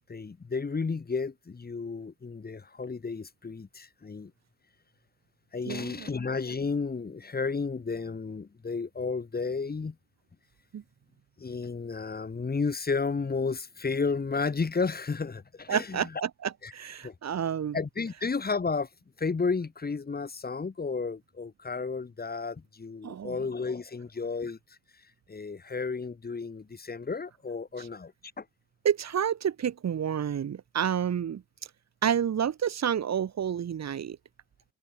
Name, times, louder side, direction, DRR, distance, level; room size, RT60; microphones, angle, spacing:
voice 1, 0.1-4.3 5.5-9.9 11.4-16.0 16.6-16.7 17.0-17.1 17.7-18.9 19.2-24.6 25.3-28.4, left 4 dB, 30° left, 2.8 m, -32 dB
voice 2, 5.7-6.1 10.7-10.8 15.7-17.8 23.0-23.4 27.8-27.9 28.8-31.4 32.0-34.2, right 8 dB, 65° right, 1.7 m, -29 dB
wide cardioid pair, 135°, 30 cm